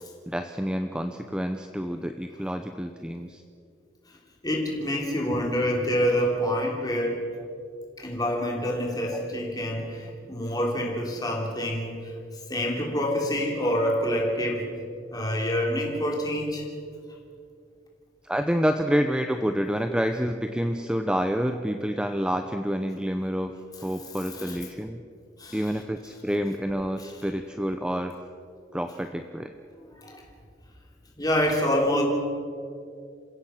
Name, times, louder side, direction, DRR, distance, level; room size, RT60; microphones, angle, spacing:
voice 1, 0.3-3.4 18.2-23.6 23.8-25.0 25.5-28.2 28.7-29.5, equal, 5° right, 6 dB, 0.7 m, -28 dB
voice 2, 4.4-7.3 8.0-12.1 12.5-14.7 15.1-16.7 24.3-24.6 25.4-25.6 27.0-27.1 30.0-30.2 31.2-32.0, equal, 20° left, -1 dB, 3.2 m, -27 dB
27.5 x 16.5 x 5.8 m, 2.4 s
head